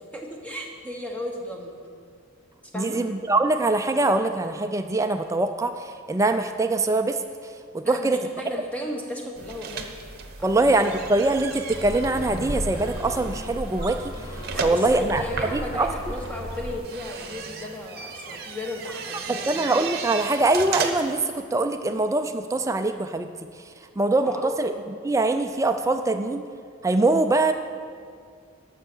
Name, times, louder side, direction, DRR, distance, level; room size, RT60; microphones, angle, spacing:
voice 1, 0.1-1.8 2.7-3.0 7.8-9.9 10.4-10.9 14.5-19.8 24.2-24.5, left 1 dB, 5° left, 0 dB, 1.2 m, -35 dB
voice 2, 2.7-7.2 7.7-8.2 10.4-14.0 14.6-15.2 15.5-15.9 19.3-23.3 24.0-24.7 25.0-26.5 26.8-27.5, right 2 dB, 15° right, 7 dB, 0.3 m, -23 dB
sound 1, 9.4-21.2, right 5 dB, 50° right, 0.9 m, -36 dB
sound 2, 11.7-16.8, equal, 80° left, 1.3 m, -34 dB
12.5 x 6.5 x 6.1 m, 2.1 s
head